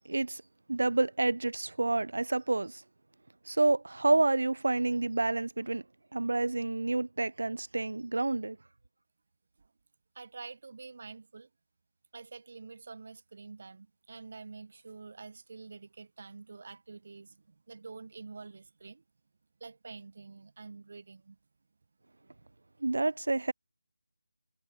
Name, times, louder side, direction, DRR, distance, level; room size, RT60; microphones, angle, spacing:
voice 1, 0.1-0.4 0.7-2.8 3.5-5.8 6.1-8.6 22.8-23.5, right 2 dB, 70° right, 0.8 m, -29 dB
voice 2, 10.1-11.5 12.1-19.0 19.6-21.4, right 4 dB, 50° right, 3.8 m, -48 dB
figure-of-eight pair, 160°, 0 cm